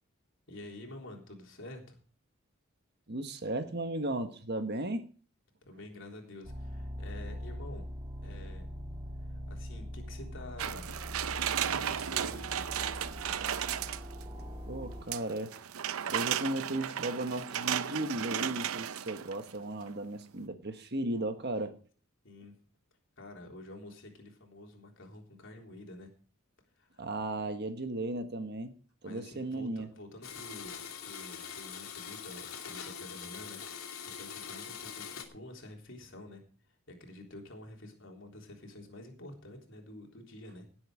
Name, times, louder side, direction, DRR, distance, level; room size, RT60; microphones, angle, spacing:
voice 1, 0.5-2.0 5.6-7.8 8.2-8.7 9.2-10.9 11.5-12.7 22.2-22.5 23.2-26.1 26.8-27.0 29.0-36.4 36.9-40.7, left 1 dB, 60° left, 3.7 m, -49 dB
voice 2, 3.1-5.1 14.7-15.6 16.1-21.8 27.0-28.7 29.0-29.9, right 2 dB, 50° right, 1.4 m, -35 dB
sound 1, 6.4-15.0, equal, 20° right, 2.8 m, -42 dB
sound 2, 10.6-14.3 15.1-19.5 19.9-20.0, right 9 dB, 80° right, 0.6 m, -34 dB
Domestic sounds home sounds, 30.2-35.3, left 7 dB, 80° left, 2.7 m, -43 dB
17.5 x 7.9 x 5.0 m
head